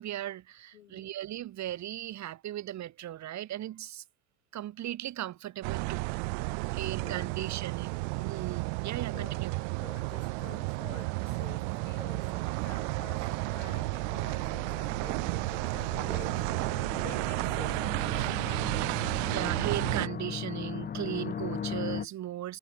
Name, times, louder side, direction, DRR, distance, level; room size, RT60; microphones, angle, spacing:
voice 1, 0.0-4.0 4.5-6.1 6.7-9.5 14.9-15.0 16.8-17.0 18.1-18.4 19.3-22.6, right 13 dB, 50° right, 0.9 m, -37 dB
voice 2, 0.7-1.1 6.8-7.5 8.0-8.5 9.1-9.4 9.8-18.9, left 11 dB, 85° left, 5.2 m, -50 dB
sound 1, 5.6-20.1, right 36 dB, 70° right, 0.5 m, -32 dB
sound 2, 8.9-22.1, left 8 dB, 25° left, 0.6 m, -41 dB
figure-of-eight pair, 45°, 38 cm